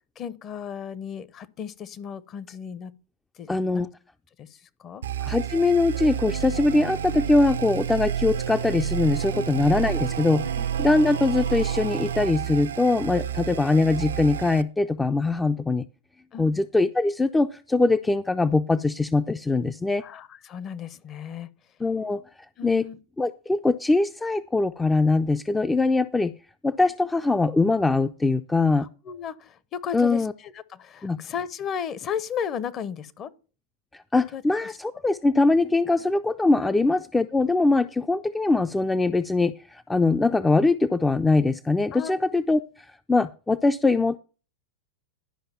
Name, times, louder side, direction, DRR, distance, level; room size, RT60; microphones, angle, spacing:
voice 1, 0.2-2.9 3.4-3.8 4.4-5.0 9.3-9.5 10.6-10.7 16.3-16.5 20.0-21.5 22.6-23.0 28.8-33.3 34.3-34.4 36.6-36.9 41.9-42.2, left 8 dB, 35° left, 0.7 m, -35 dB
voice 2, 3.5-3.9 5.2-10.5 10.8-15.9 16.4-20.0 21.8-22.2 22.6-22.9 23.2-26.3 26.6-28.9 29.9-30.3 31.0-31.2 33.9-42.6 43.1-44.2, left 3 dB, 10° left, 0.4 m, -22 dB
sound 1, 5.0-14.6, right 9 dB, 80° right, 0.5 m, -30 dB
11.5 x 5.2 x 5.7 m
hypercardioid pair, 100°, 0 cm